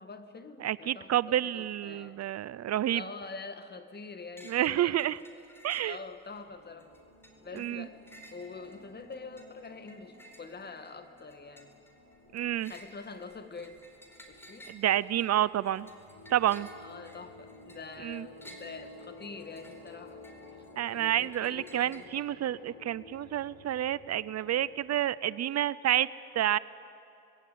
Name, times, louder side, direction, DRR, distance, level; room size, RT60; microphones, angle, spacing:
voice 1, 0.0-2.2 2.9-5.1 5.8-6.9 7.4-8.0 8.3-11.8 12.7-13.9 14.2-14.7 16.8-20.2 20.9-22.1, left 4 dB, 35° left, 9 dB, 1.9 m, -45 dB
voice 2, 0.6-3.0 4.5-5.2 5.6-6.0 7.6-7.9 12.3-12.7 14.7-15.9 16.3-16.7 18.0-18.2 20.8-26.1 26.4-26.6, right 12 dB, 60° right, 19 dB, 0.6 m, -29 dB
sound 1, 4.4-4.7 5.0-6.4 6.8-22.1, right 1 dB, 10° left, 4.2 m, -55 dB
sound 2, 6.5-24.8, left 2 dB, 80° left, 4.2 m, -54 dB
26.0 x 21.0 x 9.4 m, 2.6 s
cardioid pair, 90°, 30 cm